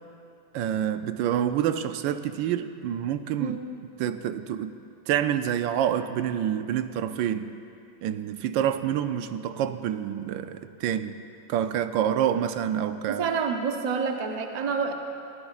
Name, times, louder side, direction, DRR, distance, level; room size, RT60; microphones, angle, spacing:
voice 1, 0.5-3.6 4.0-4.7 5.1-7.5 8.0-11.2 11.5-13.2, right 10 dB, 80° right, 10 dB, 1.3 m, -27 dB
voice 2, 13.1-14.9, right 6 dB, 40° right, 3 dB, 0.5 m, -28 dB
22.5 x 16.0 x 2.4 m, 2.6 s
omnidirectional pair, 2.0 m